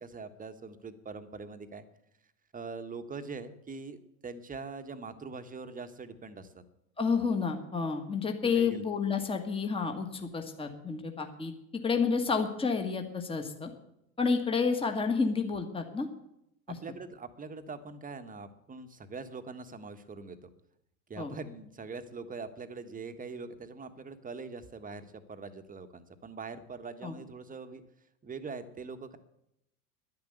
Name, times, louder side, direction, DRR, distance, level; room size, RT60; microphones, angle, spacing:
voice 1, 0.0-1.8 2.5-6.6 8.5-8.8 16.7-20.5 21.1-27.8 28.2-29.2, right 4 dB, 20° right, 10 dB, 1.4 m, -43 dB
voice 2, 7.0-11.5 11.8-13.7 14.2-16.1 16.7-16.8 21.2-21.3 27.0-27.1, left 5 dB, 10° left, 5 dB, 1.7 m, -30 dB
10.5 x 10.5 x 8.1 m, 0.81 s
hypercardioid pair, 85°, 45 cm